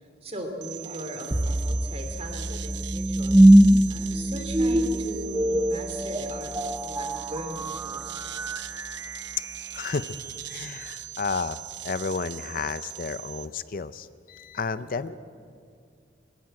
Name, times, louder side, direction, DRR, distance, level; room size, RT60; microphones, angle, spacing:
voice 1, 0.2-8.2 14.8-15.1, right 1 dB, 35° right, 5 dB, 2.8 m, -39 dB
sound 1, 0.6-13.5, right 12 dB, 80° right, 0.8 m, -40 dB
sound 2, 1.3-10.4, right 1 dB, 15° right, 0.7 m, -23 dB
voice 2, 9.7-10.2 10.5-15.2, left 5 dB, 50° left, 14 dB, 0.5 m, -32 dB
21.0 x 17.5 x 7.7 m, 2.3 s
head